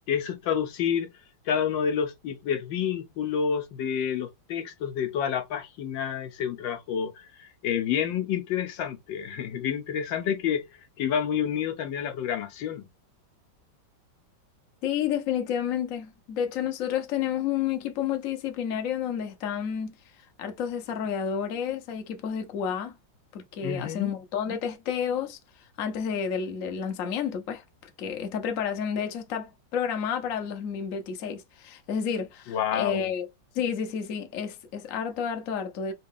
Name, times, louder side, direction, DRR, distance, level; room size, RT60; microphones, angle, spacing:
voice 1, 0.1-1.1 1.5-10.7 11.0-12.8 23.6-24.1 32.5-33.1, left 8 dB, 75° left, 1.3 m, -29 dB
voice 2, 14.8-20.0 20.4-23.0 23.3-25.4 25.8-27.6 28.0-33.3 33.5-35.9, left 8 dB, 55° left, 0.9 m, -30 dB
3.7 x 2.3 x 3.5 m
omnidirectional pair, 2.1 m